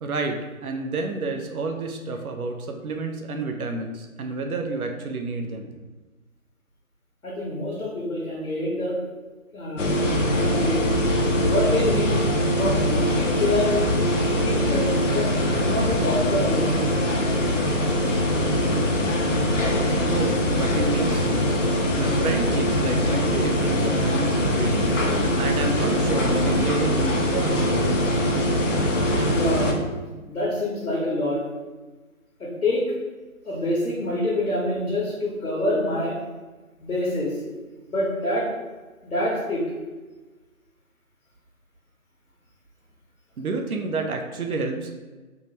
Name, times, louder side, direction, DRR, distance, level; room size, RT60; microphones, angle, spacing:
voice 1, 0.0-5.7 20.0-21.6 21.9-24.9 25.4-27.9 43.4-44.9, right 3 dB, 90° right, 3 dB, 0.6 m, -29 dB
voice 2, 7.2-9.0 9.5-9.9 10.4-10.8 11.4-12.1 12.5-13.8 14.3-14.9 15.1-17.0 29.3-29.8 30.3-31.4 32.4-32.8 33.4-36.2 36.8-37.4 37.9-38.5 39.0-39.6, left 1 dB, 75° left, -6 dB, 1.0 m, -26 dB
sound 1, 9.8-29.7, left 1 dB, 60° left, 0.5 m, -22 dB
3.6 x 2.1 x 2.9 m, 1.3 s
figure-of-eight pair, 170°, 42 cm